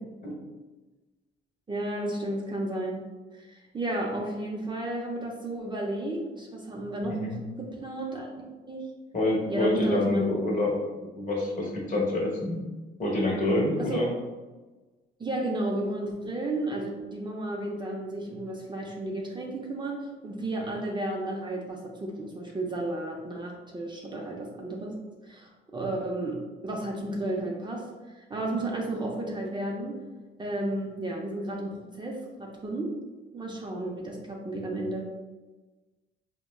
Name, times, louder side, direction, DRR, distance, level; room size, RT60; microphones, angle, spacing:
voice 1, 1.7-3.1 3.3-7.2 7.6-8.8 9.5-10.3 13.8-14.0 15.2-24.9 25.2-27.8 28.1-30.0 30.4-32.9 33.3-35.1, right 1 dB, 25° right, -2 dB, 0.5 m, -33 dB
voice 2, 7.0-7.4 9.1-10.7 11.0-12.5 13.0-14.1, left 1 dB, 40° left, -2 dB, 1.0 m, -27 dB
4.1 x 2.1 x 2.2 m, 1.2 s
cardioid pair, 90°, 20 cm